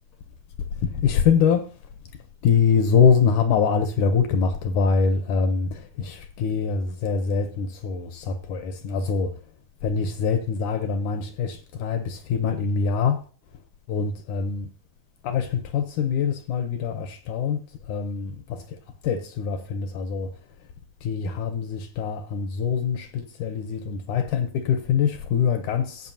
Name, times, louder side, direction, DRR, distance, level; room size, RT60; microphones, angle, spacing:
voice 1, 0.8-1.7 2.1-9.4 9.8-13.2 13.5-13.6 13.9-14.7 15.2-20.4 21.0-26.1, left 6 dB, 70° left, 2.0 m, -24 dB
14.5 x 8.3 x 2.8 m
omnidirectional pair, 4.3 m